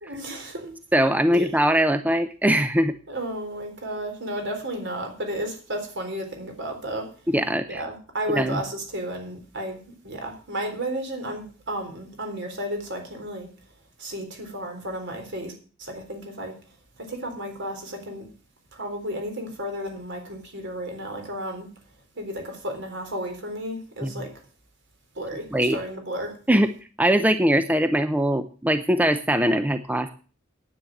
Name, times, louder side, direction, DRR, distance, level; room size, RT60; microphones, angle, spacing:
voice 1, 0.0-0.7 1.3-1.5 3.1-7.1 7.7-13.5 14.0-15.5 15.8-16.5 17.0-18.3 18.7-21.7 22.2-24.3 25.2-26.3, right 1 dB, 60° right, 4 dB, 3.9 m, -33 dB
voice 2, 0.9-2.9 7.3-7.8 8.3-8.6 24.0-24.3 25.5-25.8 26.5-26.7 27.0-30.1, equal, 10° right, 10 dB, 0.6 m, -21 dB
10.0 x 8.7 x 7.8 m, 0.39 s
head